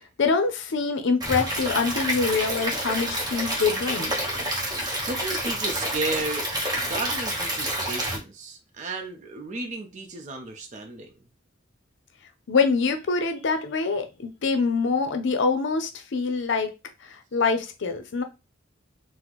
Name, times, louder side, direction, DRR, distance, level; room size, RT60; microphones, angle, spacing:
voice 1, 0.2-4.2 12.5-16.7 17.0-18.2, left 4 dB, 65° left, 0.5 m, -25 dB
Stream / Liquid, 1.2-8.2, right 1 dB, 20° right, 1.0 m, -28 dB
voice 2, 5.0-11.1, right 2 dB, 40° right, 0.6 m, -34 dB
4.2 x 2.1 x 2.9 m
head